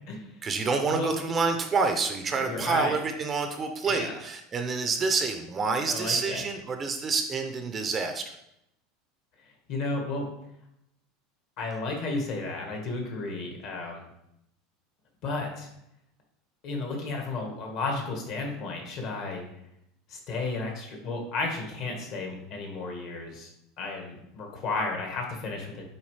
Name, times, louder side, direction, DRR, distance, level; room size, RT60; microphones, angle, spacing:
voice 1, 0.4-8.3, right 4 dB, 20° right, 6 dB, 0.5 m, -28 dB
voice 2, 2.4-3.0 3.8-4.1 5.9-6.4 9.7-10.3 11.6-14.1 15.2-15.7 16.6-19.4 20.1-23.5 23.8-25.8, left 3 dB, 50° left, 1 dB, 1.5 m, -33 dB
7.1 x 4.5 x 3.2 m, 0.79 s
supercardioid pair, 160°, 0 cm